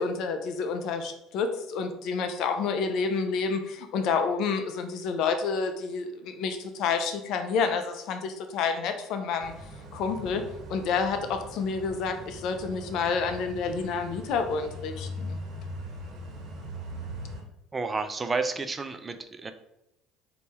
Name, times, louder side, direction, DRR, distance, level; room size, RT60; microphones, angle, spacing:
voice 1, 0.0-9.5 9.9-15.4, left 5 dB, 65° left, 7 dB, 0.6 m, -29 dB
sound 1, 9.4-17.4, equal, 50° right, 1.4 m, -40 dB
voice 2, 17.7-19.5, right 4 dB, 25° right, 9 dB, 0.4 m, -31 dB
4.1 x 2.9 x 3.5 m, 0.87 s
supercardioid pair, 85°, 0 cm